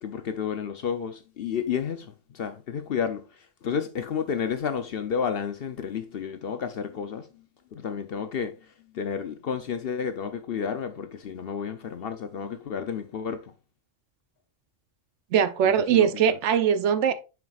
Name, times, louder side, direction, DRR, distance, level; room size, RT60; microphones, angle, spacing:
voice 1, 0.0-3.2 3.6-7.3 7.7-8.5 8.9-13.5 15.6-16.4, left 7 dB, 60° left, 0.7 m, -31 dB
voice 2, 15.3-17.1, right 8 dB, 70° right, 0.8 m, -21 dB
7.1 x 6.0 x 2.4 m
omnidirectional pair, 1.3 m